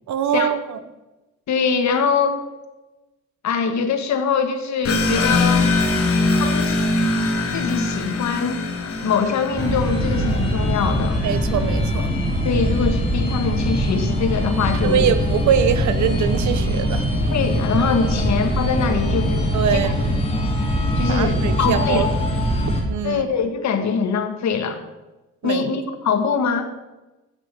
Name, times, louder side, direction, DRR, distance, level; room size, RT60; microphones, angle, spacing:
voice 1, 0.1-0.8 11.2-12.1 14.8-17.1 19.5-20.2 21.1-22.1 22.9-23.2 25.4-25.6, right 8 dB, 70° right, 12 dB, 1.0 m, -22 dB
voice 2, 1.5-2.4 3.4-5.7 6.4-6.9 7.5-8.7 9.0-11.2 12.4-15.1 17.3-19.4 19.7-19.9 21.0-22.0 23.0-24.8 25.4-26.7, left 5 dB, 65° left, 7 dB, 1.7 m, -23 dB
sound 1, 4.8-11.1, left 2 dB, 50° left, 1.9 m, -22 dB
sound 2, 9.5-22.8, equal, 20° left, 4.0 m, -22 dB
12.5 x 8.7 x 5.4 m, 1.1 s
cardioid pair, 90°, 30 cm